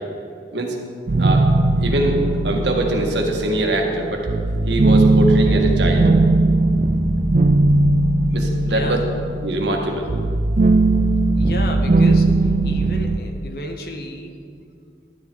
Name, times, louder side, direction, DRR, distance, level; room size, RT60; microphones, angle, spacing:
sound 1, 1.1-13.2, right 2 dB, 45° right, 0.4 m, -18 dB
voice 1, 1.8-4.3 4.7-6.1 8.3-9.0 9.4-10.1, right 2 dB, 80° right, 1 dB, 1.6 m, -23 dB
voice 2, 8.7-9.1 11.4-14.4, left 1 dB, 55° left, 4 dB, 1.1 m, -32 dB
11.5 x 10.0 x 4.6 m, 2.4 s
head